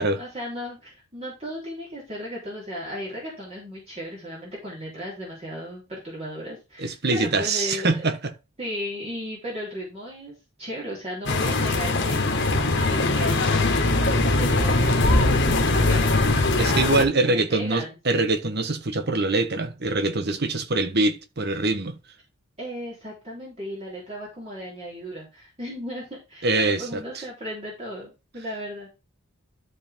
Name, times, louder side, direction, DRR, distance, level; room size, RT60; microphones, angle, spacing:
voice 1, 0.2-8.1 8.6-16.2 17.2-18.0 22.6-28.9, equal, 30° right, 3.7 m, -35 dB
voice 2, 6.8-8.3 16.6-22.0 26.4-27.2, right 2 dB, 50° right, 1.2 m, -24 dB
sound 1, 11.3-17.0, left 2 dB, 55° left, 1.7 m, -21 dB
13.0 x 4.7 x 3.7 m
head